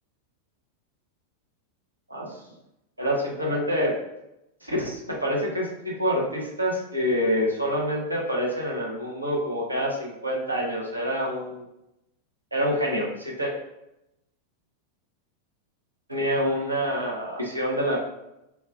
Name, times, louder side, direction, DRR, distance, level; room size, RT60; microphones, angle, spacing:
voice 1, 3.0-3.9 4.6-11.7 12.5-13.5 16.1-18.0, equal, 85° right, -2 dB, 0.8 m, -27 dB
3.0 x 2.3 x 3.5 m, 0.87 s
figure-of-eight pair, 90°, 0 cm